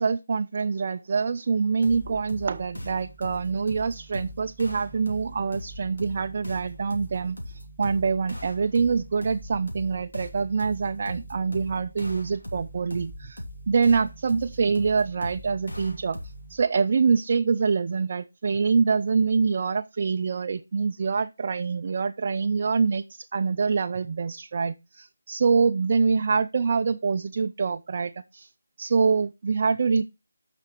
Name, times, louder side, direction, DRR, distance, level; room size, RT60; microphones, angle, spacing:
voice 1, 0.0-16.2 16.5-28.5 28.8-30.0, right 5 dB, 40° right, 0.4 m, -25 dB
sound 1, 1.8-16.6, left 1 dB, 85° left, 3.2 m, -40 dB
9.3 x 6.0 x 4.5 m
figure-of-eight pair, 160°, 0 cm